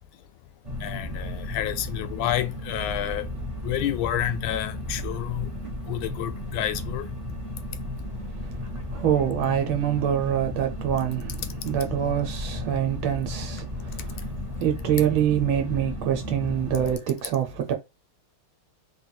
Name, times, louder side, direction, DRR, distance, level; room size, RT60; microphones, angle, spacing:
sound 1, 0.6-17.0, left 1 dB, 30° right, 0.5 m, -34 dB
voice 1, 0.8-3.3 3.6-5.5 5.9-7.1, left 12 dB, 75° left, 1.3 m, -29 dB
voice 2, 8.9-11.4 11.6-14.3 14.6-17.7, right 10 dB, 80° right, 1.5 m, -25 dB
3.8 x 2.3 x 4.3 m
omnidirectional pair, 2.3 m